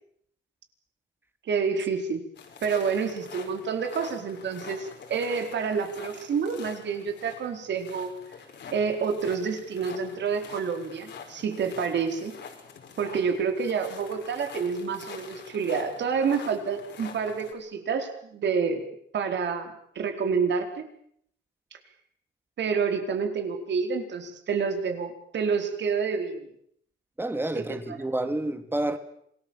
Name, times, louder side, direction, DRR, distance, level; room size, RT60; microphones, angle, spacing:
voice 1, 1.5-2.2 2.6-8.1 8.7-12.3 13.0-18.8 19.1-20.8 22.6-26.5 27.6-27.7, right 5 dB, 65° right, 4.6 m, -28 dB
sound 1, 2.4-17.5, left 6 dB, 60° left, 5.3 m, -45 dB
voice 2, 27.2-29.0, right 1 dB, 10° right, 2.4 m, -29 dB
27.0 x 19.5 x 7.3 m
cardioid pair, 90°, 20 cm